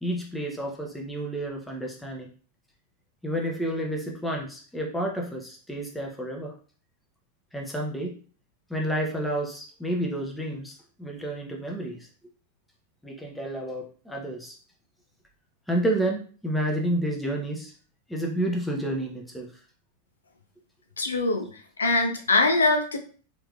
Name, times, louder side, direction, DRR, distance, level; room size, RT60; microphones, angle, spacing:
voice 1, 0.0-2.3 3.2-6.5 7.5-8.2 8.7-12.0 13.0-14.6 15.7-17.7 18.1-19.5, right 1 dB, 5° left, -1 dB, 0.9 m, -30 dB
voice 2, 21.0-23.0, left 3 dB, 75° left, 4 dB, 0.5 m, -23 dB
3.4 x 3.1 x 2.5 m, 0.41 s
figure-of-eight pair, 90°, 0 cm